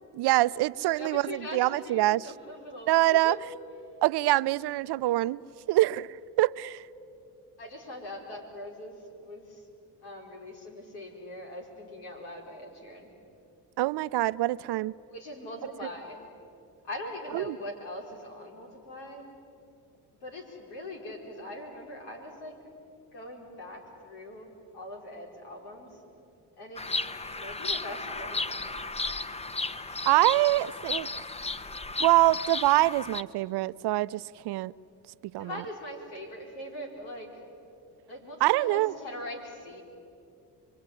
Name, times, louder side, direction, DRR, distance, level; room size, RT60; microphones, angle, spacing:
voice 1, 0.1-2.3 2.9-3.3 4.0-5.4 5.7-6.8 13.8-14.9 17.3-17.6 30.1-31.1 32.0-34.7 35.3-35.6 38.4-38.9, right 16 dB, 70° right, 0.6 m, -25 dB
voice 2, 0.9-3.5 7.6-9.6 10.0-13.1 15.1-16.3 16.8-19.3 20.2-22.5 23.1-26.0 26.6-27.0 27.3-28.7 35.4-37.3 38.1-39.8, left 1 dB, 90° left, 4.8 m, -42 dB
Bird vocalization bird call bird song, 26.8-33.2, left 3 dB, 15° left, 0.8 m, -34 dB
26.5 x 23.0 x 9.8 m
supercardioid pair, 60°, 41 cm